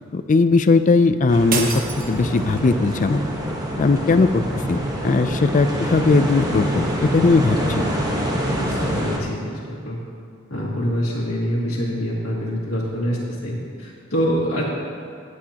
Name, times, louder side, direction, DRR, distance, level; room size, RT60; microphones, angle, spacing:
voice 1, 0.1-1.7 2.1-3.2 3.8-7.9, left 3 dB, 40° left, 11 dB, 0.4 m, -18 dB
sound 1, 1.3-9.2, equal, 20° right, 1.2 m, -26 dB
sound 2, 1.5-2.8, right 5 dB, 40° right, 1.0 m, -28 dB
voice 2, 8.5-10.0 10.5-14.7, equal, 80° left, -7 dB, 2.1 m, -25 dB
18.5 x 8.4 x 2.9 m, 2.2 s
head